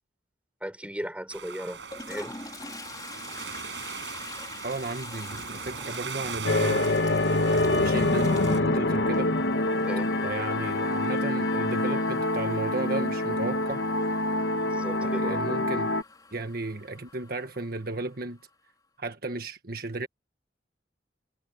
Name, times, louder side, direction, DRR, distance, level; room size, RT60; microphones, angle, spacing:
voice 1, 0.6-1.8 2.1-2.4 9.9-10.1 14.7-15.4, equal, 5° right, 5.2 m, -36 dB
sound 1, 1.3-8.6, right 5 dB, 80° right, 5.7 m, -39 dB
Toilet flush, 1.7-18.5, left 3 dB, 20° left, 3.8 m, -46 dB
voice 2, 4.6-6.9 7.6-9.3 10.2-13.9 15.0-15.9 16.3-18.4 19.0-20.1, right 2 dB, 55° right, 1.6 m, -34 dB
sound 2, 6.4-16.0, left 2 dB, 75° left, 1.2 m, -26 dB
head